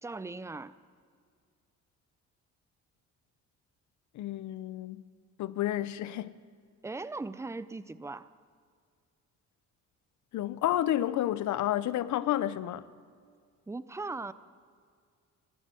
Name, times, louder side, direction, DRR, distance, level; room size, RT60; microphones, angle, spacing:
voice 1, 0.0-0.7 6.8-8.3 13.7-14.3, right 3 dB, 10° right, 0.5 m, -38 dB
voice 2, 4.1-5.0 5.4-6.4 10.3-12.9, left 12 dB, 70° left, 0.7 m, -30 dB
16.5 x 12.5 x 6.2 m
cardioid pair, 90°, 30 cm